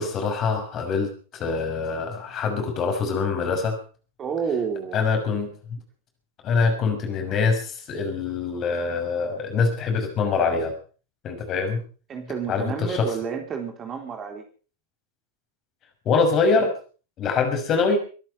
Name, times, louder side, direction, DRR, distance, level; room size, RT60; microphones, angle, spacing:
voice 1, 0.0-3.8 4.9-5.8 6.4-10.8 11.2-11.8 12.5-13.1 16.0-16.7 17.2-18.0, left 4 dB, 30° left, 5 dB, 6.1 m, -24 dB
voice 2, 4.2-5.0 12.1-14.4, right 6 dB, 25° right, 5 dB, 3.7 m, -30 dB
24.0 x 11.0 x 5.6 m, 0.40 s
figure-of-eight pair, 90°, 0 cm